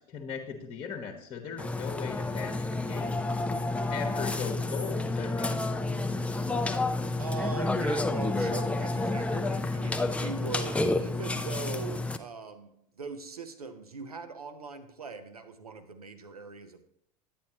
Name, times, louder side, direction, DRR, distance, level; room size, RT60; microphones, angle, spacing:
voice 1, 0.0-3.3 3.9-5.6, left 6 dB, 30° left, 3 dB, 1.1 m, -38 dB
Burping eructation, 1.6-12.2, left 2 dB, 5° left, 0.5 m, -30 dB
voice 2, 7.2-16.9, right 4 dB, 80° right, 9 dB, 0.8 m, -41 dB
10.5 x 8.7 x 2.9 m, 0.74 s
figure-of-eight pair, 75°, 19 cm